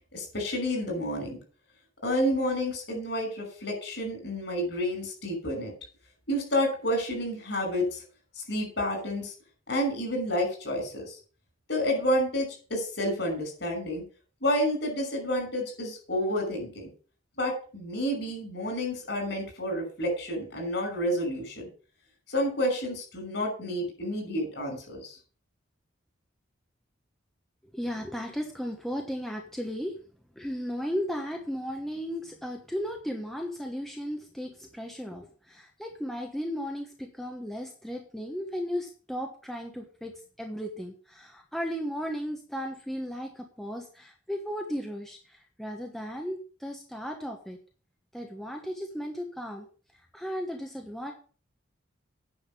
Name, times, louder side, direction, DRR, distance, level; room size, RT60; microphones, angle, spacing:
voice 1, 0.1-1.4 2.0-5.7 6.3-8.0 8.4-9.3 9.7-11.2 11.7-14.0 14.4-16.9 17.4-21.7 22.3-25.2, equal, 60° left, 2 dB, 6.1 m, -30 dB
voice 2, 27.7-30.0 30.3-47.6 48.1-49.7 50.1-51.1, equal, ahead, 2 dB, 1.1 m, -35 dB
9.7 x 6.4 x 6.8 m, 0.39 s
head